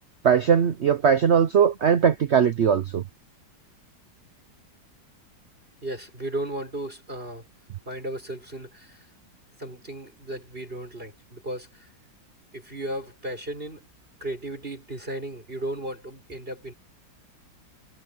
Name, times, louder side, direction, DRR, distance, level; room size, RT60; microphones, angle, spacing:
voice 1, 0.2-3.0, right 7 dB, 70° right, 0.6 m, -20 dB
voice 2, 5.8-7.5 7.9-9.1 9.6-11.9 12.5-13.9 14.2-16.7, right 1 dB, 30° right, 6.7 m, -35 dB
omnidirectional pair, 2.0 m